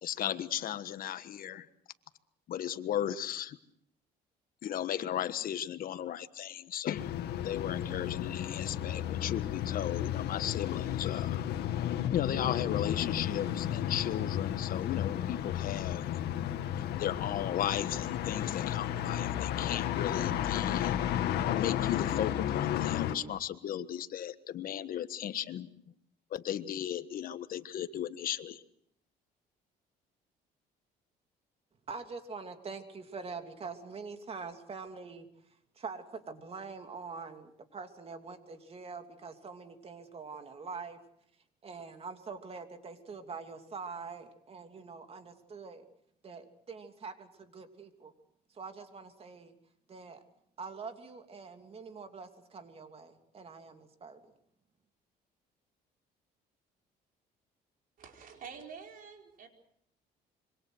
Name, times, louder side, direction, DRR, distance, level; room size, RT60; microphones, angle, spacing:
voice 1, 0.0-1.7 2.5-3.6 4.6-7.1 7.4-11.5 12.1-16.1 16.7-20.9 21.5-25.7 26.3-28.6, left 10 dB, 60° left, 12 dB, 1.4 m, -36 dB
sound 1, 6.9-23.1, left 11 dB, 75° left, 2.0 m, -33 dB
voice 2, 31.9-35.3 35.7-41.0 41.6-45.9 46.2-48.1 48.5-49.5 49.9-50.2 50.6-54.3, right 4 dB, 35° right, 7 dB, 2.9 m, -44 dB
voice 3, 58.0-59.5, right 6 dB, 55° right, 3 dB, 4.7 m, -47 dB
26.5 x 24.5 x 6.4 m, 0.71 s
cardioid pair, 110°, 17 cm